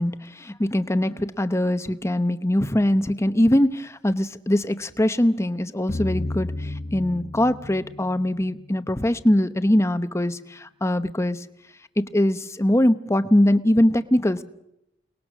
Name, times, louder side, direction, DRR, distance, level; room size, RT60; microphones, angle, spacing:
voice 1, 0.0-11.4 12.0-14.4, left 1 dB, 15° left, 12 dB, 0.8 m, -22 dB
sound 1, 5.9-9.0, left 2 dB, 45° left, 0.8 m, -33 dB
29.5 x 20.0 x 6.3 m, 0.84 s
head